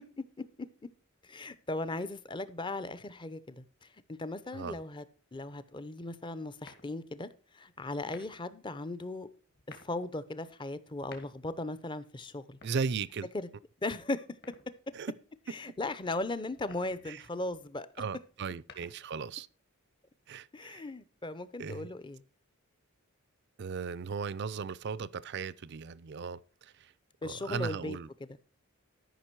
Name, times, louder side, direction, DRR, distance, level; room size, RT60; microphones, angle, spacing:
voice 1, 1.2-3.9 4.2-5.0 5.3-7.3 7.5-9.3 9.7-12.6 13.3-13.5 13.8-14.2 15.5-17.9 20.5-22.2 27.2-28.0, left 2 dB, 20° left, 0.6 m, -37 dB
sound 1, 6.7-7.2 8.0-8.6 9.5-10.0 10.9-11.6 12.5-13.4 14.4-15.0 16.5-17.1 18.4-19.2, left 4 dB, 50° left, 2.2 m, -55 dB
voice 2, 12.6-13.3 14.9-15.1 17.1-17.2 18.0-19.5 20.3-20.9 21.6-21.9 23.6-26.9 27.2-28.1, right 5 dB, 50° right, 0.4 m, -37 dB
13.0 x 5.9 x 4.6 m
head